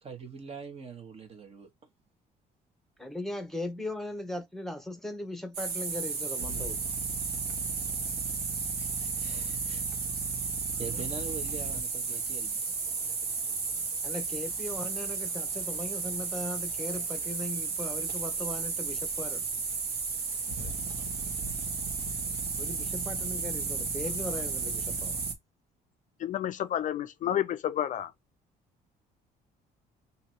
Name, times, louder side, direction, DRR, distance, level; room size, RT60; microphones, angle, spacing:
voice 1, 0.0-1.7 8.7-9.9 10.8-12.6, right 5 dB, 35° right, 1.3 m, -43 dB
voice 2, 3.0-6.8 10.9-11.0 12.1-12.2 14.0-19.5 22.6-25.2, left 1 dB, ahead, 1.0 m, -38 dB
sound 1, 5.5-25.3, right 4 dB, 70° right, 1.4 m, -33 dB
voice 3, 26.2-28.1, left 11 dB, 50° left, 0.4 m, -30 dB
2.9 x 2.8 x 4.5 m
cardioid pair, 110°, 17 cm